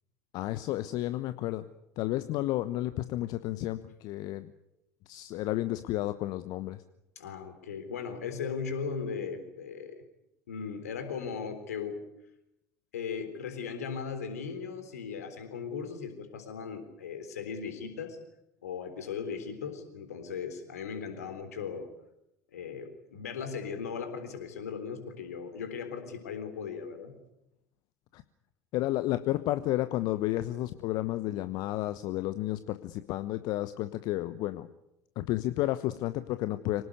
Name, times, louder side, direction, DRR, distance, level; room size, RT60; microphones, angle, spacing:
voice 1, 0.3-1.6 2.0-4.5 5.1-6.8 28.1-28.2 28.7-34.7 35.2-36.8, left 16 dB, 55° left, 13 dB, 1.1 m, -32 dB
voice 2, 7.2-10.0 10.5-12.0 12.9-18.2 18.6-21.9 22.5-27.2, left 6 dB, 75° left, 9 dB, 3.7 m, -37 dB
25.5 x 18.5 x 9.6 m, 0.86 s
figure-of-eight pair, 65°, 8 cm